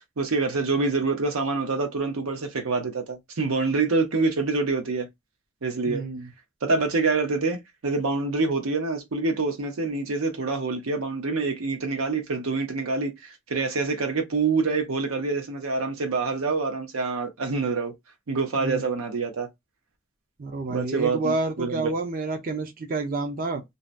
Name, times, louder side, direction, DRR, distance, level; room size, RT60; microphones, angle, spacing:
voice 1, 0.2-5.1 5.6-6.0 6.6-17.9 18.3-19.5 20.7-21.9, right 3 dB, 90° right, 0.7 m, -26 dB
voice 2, 5.9-6.3 18.6-18.8 20.4-23.6, right 3 dB, 45° right, 0.6 m, -29 dB
2.7 x 2.1 x 2.4 m
head